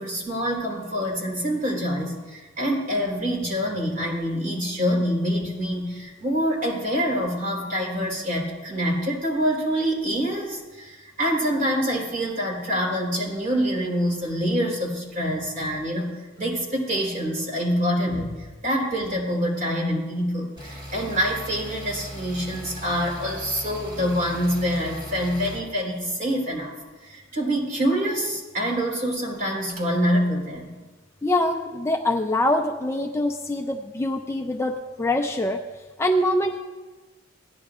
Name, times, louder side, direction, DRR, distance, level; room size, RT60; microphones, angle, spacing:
voice 1, 0.0-16.1 16.4-26.7 27.0-30.7, equal, 45° right, -2 dB, 3.8 m, -26 dB
sound 1, 20.6-25.6, equal, 25° right, 3.6 m, -38 dB
voice 2, 31.2-35.6 36.0-36.6, left 1 dB, 15° left, 2 dB, 0.5 m, -24 dB
17.0 x 10.5 x 2.4 m, 1.2 s
head